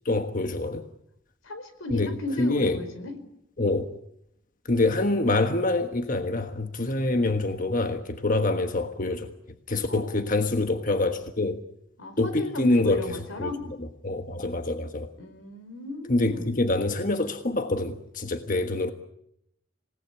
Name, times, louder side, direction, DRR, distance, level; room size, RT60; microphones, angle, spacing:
voice 1, 0.0-0.9 1.9-2.1 2.4-2.8 3.6-3.9 4.6-9.3 9.7-11.6 12.2-13.5 13.8-15.1 16.1-18.9, left 2 dB, 40° left, 7 dB, 1.4 m, -26 dB
voice 2, 1.4-3.2 9.9-10.3 12.0-13.6 15.2-16.5, left 2 dB, 90° left, 10 dB, 4.6 m, -35 dB
27.0 x 18.5 x 9.8 m, 0.78 s
head